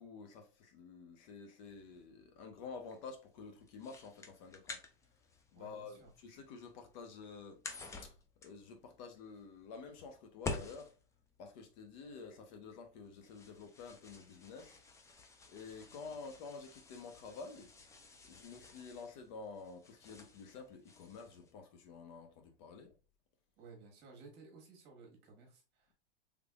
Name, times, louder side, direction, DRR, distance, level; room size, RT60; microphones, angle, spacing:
voice 1, 0.0-4.8 5.5-7.6 8.0-8.1 8.4-10.9 11.4-14.8 15.5-17.7 18.2-22.9, left 4 dB, 50° left, 0.9 m, -50 dB
sound 1, 1.7-21.5, left 3 dB, 10° left, 0.4 m, -51 dB
voice 2, 5.5-6.1 16.1-16.2 23.6-25.9, right 4 dB, 35° right, 1.4 m, -57 dB
3.4 x 3.3 x 2.3 m
hypercardioid pair, 115°, 29 cm